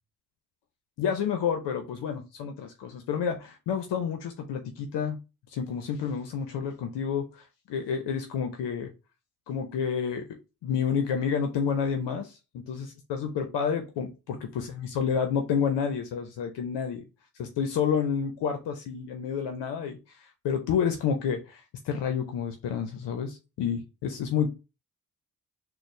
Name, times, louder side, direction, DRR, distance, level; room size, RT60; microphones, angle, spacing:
voice 1, 1.0-5.2 5.5-8.9 9.5-10.2 10.6-17.0 17.4-24.5, left 7 dB, 75° left, 6 dB, 0.6 m, -29 dB
4.1 x 2.1 x 3.0 m, 0.28 s
supercardioid pair, 40°, 42 cm